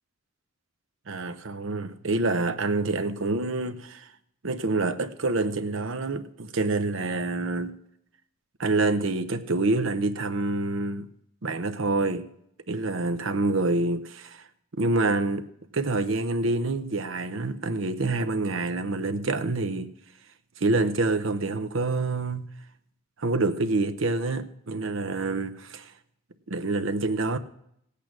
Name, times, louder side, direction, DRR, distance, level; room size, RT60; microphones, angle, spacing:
voice 1, 1.1-4.1 4.4-7.7 8.6-11.1 11.4-12.3 12.7-14.5 14.7-15.4 15.7-19.9 20.6-22.5 23.2-25.9 26.5-27.4, right 2 dB, 60° right, 0.8 m, -27 dB
16.0 x 8.5 x 6.1 m
head